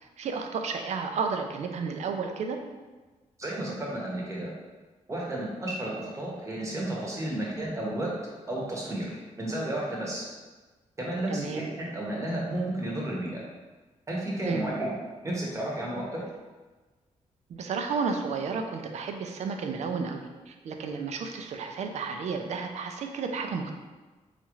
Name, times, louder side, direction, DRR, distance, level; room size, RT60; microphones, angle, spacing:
voice 1, 0.2-2.6 11.3-11.7 14.4-14.7 17.5-23.7, right 5 dB, 60° right, 4 dB, 0.4 m, -32 dB
voice 2, 3.4-4.5 5.1-8.1 8.5-10.3 11.0-13.4 14.1-14.9 15.2-16.2, right 1 dB, 25° right, -3 dB, 0.9 m, -32 dB
4.1 x 2.4 x 3.0 m, 1.3 s
wide cardioid pair, 145°, 13 cm